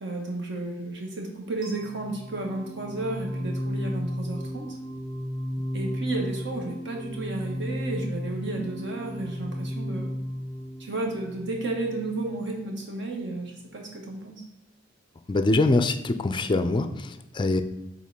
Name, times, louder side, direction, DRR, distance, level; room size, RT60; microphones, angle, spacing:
voice 1, 0.0-4.7 5.7-10.1 10.8-14.4, right 2 dB, 60° right, 0 dB, 1.1 m, -32 dB
sound 1, 1.6-12.6, equal, 40° right, 2.3 m, -34 dB
voice 2, 15.3-17.6, left 2 dB, 25° left, 9 dB, 0.4 m, -24 dB
5.4 x 3.7 x 5.4 m, 0.95 s
head